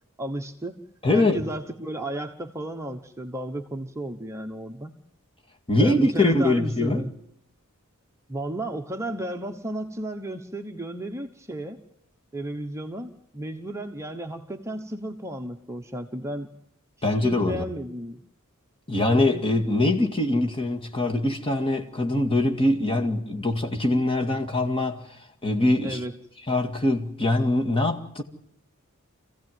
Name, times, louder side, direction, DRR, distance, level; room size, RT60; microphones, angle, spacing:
voice 1, 0.2-0.9 1.1-5.0 5.8-7.1 8.3-11.8 12.3-16.5 17.0-18.2 19.2-19.4 25.8-26.1, right 1 dB, 15° right, 1.1 m, -33 dB
voice 2, 1.0-1.4 5.7-7.1 17.0-17.6 18.9-25.1 25.4-26.0 26.5-28.2, left 2 dB, 25° left, 2.2 m, -23 dB
27.0 x 16.0 x 9.3 m
head